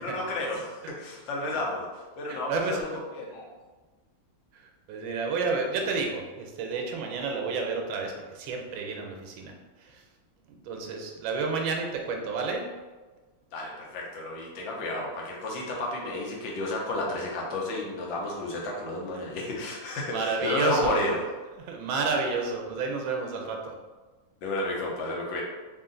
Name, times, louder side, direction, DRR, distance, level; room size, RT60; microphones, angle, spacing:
voice 1, 0.0-3.5 13.5-21.2 24.4-25.4, left 2 dB, 75° left, -1 dB, 1.5 m, -32 dB
voice 2, 2.3-2.8 4.5-9.5 9.8-10.0 10.5-12.6 20.1-21.2 21.6-23.7, right 4 dB, 90° right, 2 dB, 1.4 m, -31 dB
3.7 x 2.5 x 3.7 m, 1.3 s
omnidirectional pair, 2.1 m